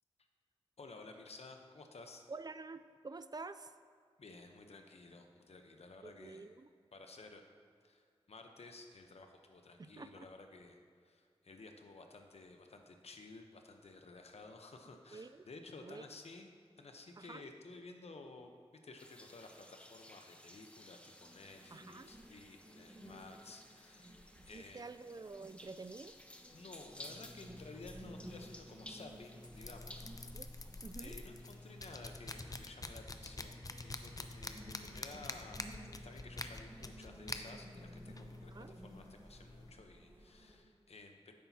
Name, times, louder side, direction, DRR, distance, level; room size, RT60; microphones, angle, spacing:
voice 1, 0.8-2.2 4.2-6.5 6.9-7.4 7.8-10.8 11.0-18.5 18.8-24.2 24.5-24.9 26.5-30.1 31.0-41.3, left 3 dB, 75° left, 4 dB, 0.9 m, -54 dB
voice 2, 2.3-3.7 6.0-6.7 9.8-10.3 15.1-15.4 15.8-16.0 17.2-17.4 21.7-22.1 24.5-26.1 30.3-30.5 30.8-31.2 38.5-38.8, right 3 dB, 40° right, 12 dB, 0.4 m, -48 dB
sound 1, 19.0-32.1, left 1 dB, 10° left, 0.9 m, -57 dB
sound 2, 21.2-40.6, equal, 20° right, 1.7 m, -57 dB
sound 3, 27.1-39.7, left 2 dB, 35° left, 0.6 m, -48 dB
10.0 x 8.5 x 2.8 m, 2.1 s
cardioid pair, 45°, 11 cm